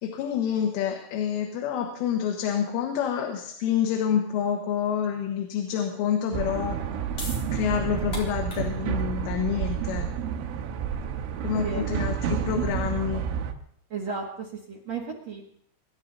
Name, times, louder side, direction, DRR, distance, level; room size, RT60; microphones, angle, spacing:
voice 1, 0.0-6.9 7.5-10.1 11.4-13.2, left 8 dB, 90° left, 2 dB, 4.0 m, -28 dB
sound 1, 6.3-13.5, right 7 dB, 85° right, 3.6 m, -30 dB
sound 2, 7.1-13.5, left 2 dB, 35° left, 4.6 m, -44 dB
voice 2, 11.5-12.0 13.9-15.4, right 4 dB, 60° right, -2 dB, 1.8 m, -34 dB
24.5 x 11.5 x 4.0 m, 0.69 s
omnidirectional pair, 5.6 m